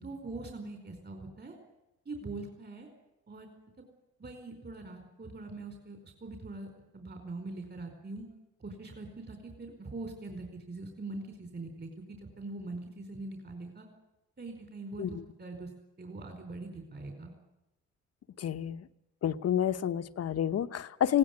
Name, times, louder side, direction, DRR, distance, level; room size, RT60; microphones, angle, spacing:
voice 1, 0.0-1.5 2.0-2.9 3.3-3.5 4.2-8.3 8.6-13.9 14.4-15.7 16.0-17.3, right 2 dB, 35° right, 5 dB, 4.7 m, -42 dB
voice 2, 18.4-18.9 19.2-21.2, left 10 dB, 55° left, 12 dB, 1.0 m, -29 dB
19.5 x 17.5 x 9.6 m, 0.95 s
cardioid pair, 90°, 30 cm